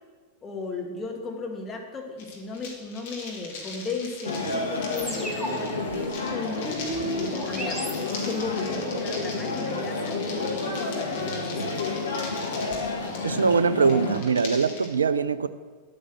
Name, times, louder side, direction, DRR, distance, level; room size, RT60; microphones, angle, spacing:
voice 1, 0.4-6.8 7.0-11.9, left 3 dB, 20° left, 0 dB, 2.2 m, -35 dB
sound 1, 2.2-14.9, left 3 dB, 55° left, 2.6 m, -41 dB
sound 2, 4.2-14.2, left 3 dB, 75° left, 1.6 m, -30 dB
sound 3, 5.0-8.6, equal, 5° right, 2.2 m, -38 dB
voice 2, 13.2-15.5, right 5 dB, 70° right, 15 dB, 0.5 m, -22 dB
10.5 x 8.8 x 6.3 m, 1.5 s
figure-of-eight pair, 90°, 0 cm